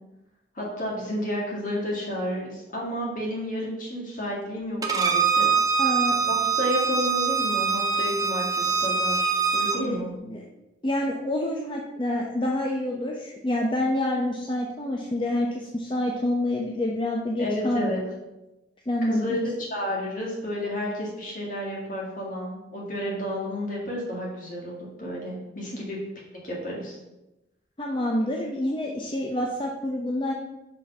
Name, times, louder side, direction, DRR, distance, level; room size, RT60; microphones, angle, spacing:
voice 1, 0.5-5.5 6.2-10.1 17.4-18.0 19.0-19.4 19.7-26.0 26.4-26.9, equal, 45° left, -4 dB, 1.9 m, -31 dB
Bowed string instrument, 4.8-9.8, right 5 dB, 20° right, 0.7 m, -24 dB
voice 2, 5.8-6.2 9.8-10.0 10.3-10.4 10.8-17.9 18.9-19.4 27.8-30.3, left 1 dB, 25° left, -1 dB, 0.7 m, -27 dB
6.0 x 5.3 x 5.5 m, 0.99 s
head